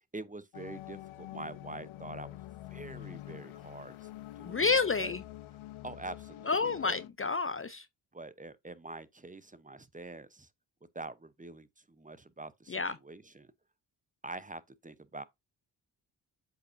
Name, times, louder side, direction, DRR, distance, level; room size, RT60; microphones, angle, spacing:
voice 1, 0.1-2.4 2.7-4.1 4.4-5.1 5.8-7.0 8.1-10.5 10.9-13.5 14.2-15.2, right 2 dB, 15° right, 0.8 m, -45 dB
sound 1, 0.5-7.1, left 15 dB, 80° left, 0.6 m, -46 dB
voice 2, 4.4-5.2 6.5-7.9 12.7-12.9, left 4 dB, 30° left, 0.5 m, -29 dB
8.0 x 5.6 x 2.6 m
supercardioid pair, 40°, 48 cm